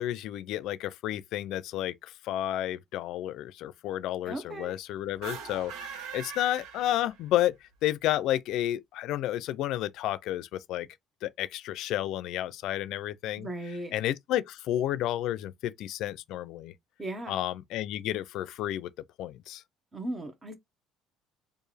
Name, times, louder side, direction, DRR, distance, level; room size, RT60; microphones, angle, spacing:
voice 1, 0.0-10.9 11.2-13.5 13.9-16.7 17.3-18.9 19.2-19.6, left 13 dB, 65° left, 0.5 m, -31 dB
voice 2, 4.3-4.7 13.4-13.9 17.0-17.4 19.9-20.5, right 1 dB, 20° right, 1.0 m, -37 dB
sound 1, 5.1-7.4, right 7 dB, 85° right, 1.2 m, -42 dB
4.5 x 2.6 x 3.3 m
cardioid pair, 150°, 0 cm